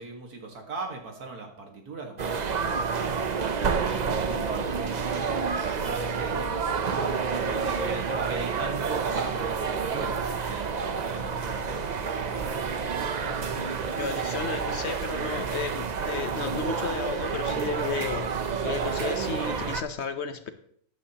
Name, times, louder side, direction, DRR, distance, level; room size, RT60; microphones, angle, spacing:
voice 1, 0.0-11.8, right 3 dB, 85° right, 2 dB, 2.3 m, -39 dB
sound 1, 2.2-19.8, right 5 dB, 50° right, 0.5 m, -29 dB
voice 2, 13.2-20.5, left 5 dB, 55° left, 9 dB, 1.0 m, -34 dB
13.5 x 9.6 x 2.9 m, 0.65 s
omnidirectional pair, 1.6 m